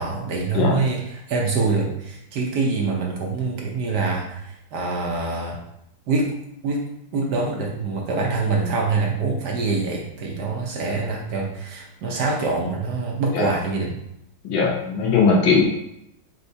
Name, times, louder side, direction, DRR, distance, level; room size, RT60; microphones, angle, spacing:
voice 1, 0.0-5.6 6.1-6.4 6.6-6.8 7.1-14.0, right 3 dB, 65° right, -1 dB, 1.2 m, -25 dB
voice 2, 14.4-15.6, left 4 dB, 75° left, -1 dB, 1.7 m, -19 dB
4.4 x 4.0 x 2.7 m, 0.79 s
omnidirectional pair, 2.2 m